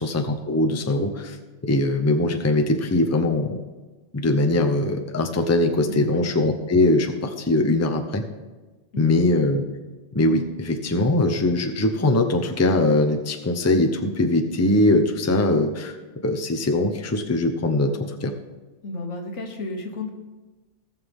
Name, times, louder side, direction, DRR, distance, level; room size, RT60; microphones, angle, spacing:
voice 1, 0.0-1.4 1.6-3.6 4.1-8.2 9.0-9.6 10.1-15.9 16.2-18.3, left 2 dB, 15° left, 4 dB, 0.7 m, -21 dB
voice 2, 5.9-6.2 8.9-9.2 18.8-20.1, left 2 dB, 80° left, 3 dB, 1.7 m, -32 dB
18.0 x 6.4 x 3.6 m, 1.2 s
omnidirectional pair, 1.2 m